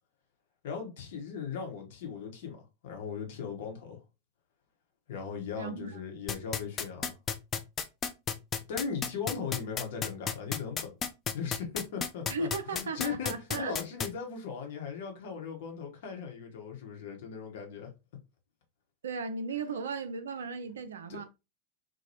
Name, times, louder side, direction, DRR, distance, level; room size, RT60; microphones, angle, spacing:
voice 1, 0.6-4.0 5.1-7.2 8.7-10.9 11.3-17.9 21.1-21.2, left 6 dB, 55° left, 0.9 m, -38 dB
voice 2, 5.5-6.0 12.3-13.8 19.0-21.2, right 4 dB, 65° right, 0.4 m, -36 dB
sound 1, 6.3-14.1, left 6 dB, 25° left, 0.3 m, -31 dB
2.9 x 2.2 x 2.8 m
figure-of-eight pair, 90°, 0 cm